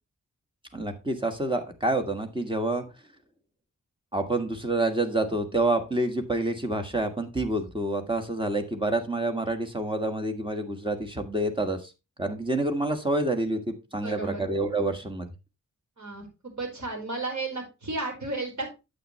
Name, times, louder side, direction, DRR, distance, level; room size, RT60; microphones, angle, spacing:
voice 1, 0.7-2.8 4.1-11.9 12.2-15.3, right 2 dB, 15° right, 5 dB, 1.6 m, -28 dB
voice 2, 14.0-14.4 16.0-18.7, right 2 dB, 60° right, 1 dB, 4.6 m, -33 dB
9.3 x 8.0 x 3.2 m, 0.27 s
wide cardioid pair, 110°, 32 cm